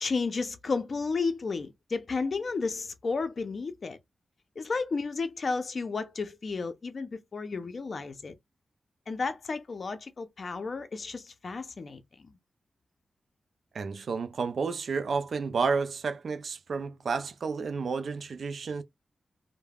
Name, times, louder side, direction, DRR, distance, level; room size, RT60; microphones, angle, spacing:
voice 1, 0.0-4.0 4.6-8.3 9.1-12.3, left 4 dB, 50° left, 0.5 m, -32 dB
voice 2, 13.7-18.8, right 5 dB, 65° right, 0.4 m, -31 dB
2.3 x 2.1 x 3.3 m
wide cardioid pair, 110°, 0 cm